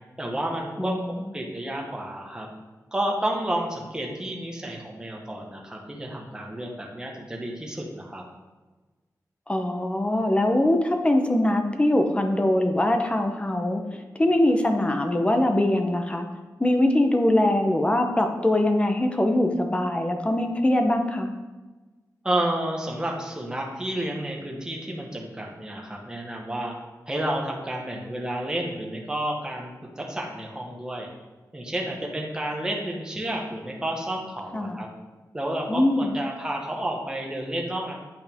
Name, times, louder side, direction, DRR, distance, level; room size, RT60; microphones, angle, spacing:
voice 1, 0.2-0.9 1.3-2.5 2.9-8.2 22.2-26.7 27.1-29.7 30.0-31.1 31.5-34.9 35.3-38.0, right 1 dB, 10° right, 0 dB, 1.1 m, -30 dB
voice 2, 0.8-1.3 9.5-13.8 14.2-16.3 16.6-21.3 34.5-34.8 35.7-36.1, left 1 dB, 20° left, 5 dB, 0.6 m, -22 dB
8.8 x 5.4 x 3.5 m, 1.2 s
wide cardioid pair, 155°, 7 cm